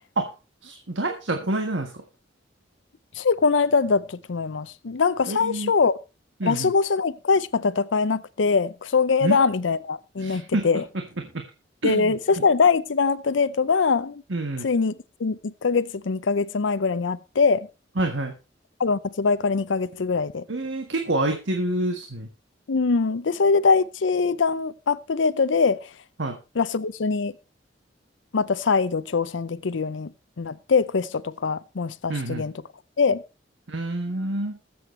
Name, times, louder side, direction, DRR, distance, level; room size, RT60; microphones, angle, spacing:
voice 1, 0.6-1.9 5.3-5.7 6.4-6.7 9.2-9.4 10.2-10.6 11.2-11.4 11.8-12.2 14.3-14.7 18.0-18.3 20.5-22.3 26.2-26.4 32.1-32.4 33.7-34.6, right 2 dB, 85° right, 1.6 m, -27 dB
voice 2, 3.2-5.9 6.4-10.8 11.8-14.2 14.6-14.9 15.2-17.7 18.8-20.4 22.7-25.8 26.6-27.3 28.3-30.1 30.4-32.5 33.0-33.2, left 4 dB, 90° left, 0.6 m, -22 dB
21.0 x 7.8 x 3.2 m
head